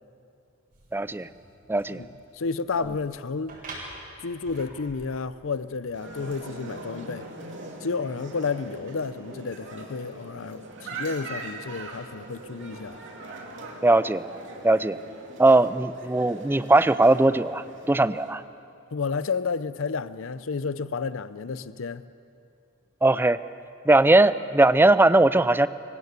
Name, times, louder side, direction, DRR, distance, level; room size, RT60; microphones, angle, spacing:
sound 1, 0.7-6.3, right 2 dB, 45° right, 7.5 m, -47 dB
voice 1, 0.9-1.3 1.7-2.0 13.8-14.3 14.6-15.0 15.4-18.4 23.0-23.4 23.9-25.7, right 2 dB, 10° right, 0.4 m, -19 dB
voice 2, 2.3-3.6 4.2-7.3 7.8-13.0 18.9-22.0, left 4 dB, 70° left, 0.6 m, -31 dB
sound 2, 5.9-18.3, right 2 dB, 60° right, 3.0 m, -41 dB
26.0 x 16.5 x 8.2 m
head